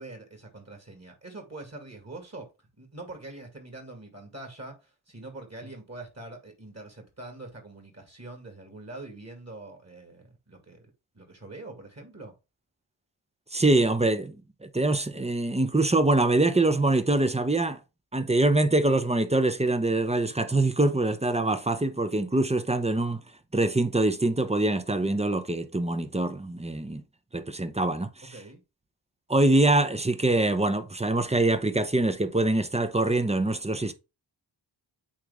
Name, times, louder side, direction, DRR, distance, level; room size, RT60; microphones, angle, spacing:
voice 1, 0.0-2.5 2.8-10.9 11.1-12.3 28.2-28.6, right 2 dB, 30° right, 2.1 m, -44 dB
voice 2, 13.5-14.4 14.6-17.8 18.1-23.2 23.5-27.0 27.3-28.3 29.3-33.9, right 2 dB, 15° right, 0.7 m, -24 dB
8.6 x 3.1 x 3.5 m
wide cardioid pair, 70°, 48 cm